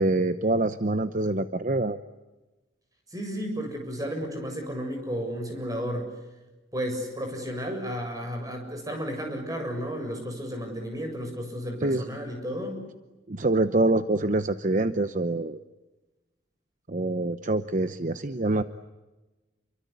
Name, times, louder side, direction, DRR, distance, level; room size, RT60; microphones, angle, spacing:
voice 1, 0.0-2.0 11.8-12.0 13.3-15.6 16.9-18.6, right 2 dB, 45° right, 11 dB, 0.9 m, -25 dB
voice 2, 3.1-6.1 6.7-12.8, equal, 20° right, 4 dB, 7.4 m, -33 dB
29.5 x 24.0 x 8.3 m, 1.1 s
head